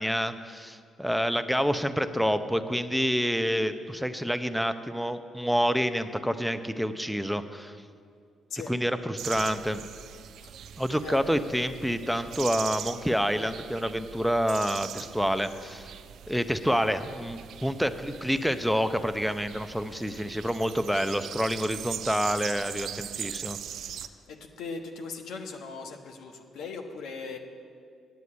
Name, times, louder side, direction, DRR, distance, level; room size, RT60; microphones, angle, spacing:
voice 1, 0.0-7.8 8.7-9.8 10.8-15.9 16.3-23.6, equal, ahead, 10 dB, 0.7 m, -28 dB
sound 1, 9.2-24.1, right 9 dB, 75° right, 0.4 m, -41 dB
voice 2, 24.0-27.4, left 4 dB, 80° left, 4 dB, 1.1 m, -39 dB
9.4 x 8.2 x 8.6 m, 2.2 s
cardioid pair, 70°, 0 cm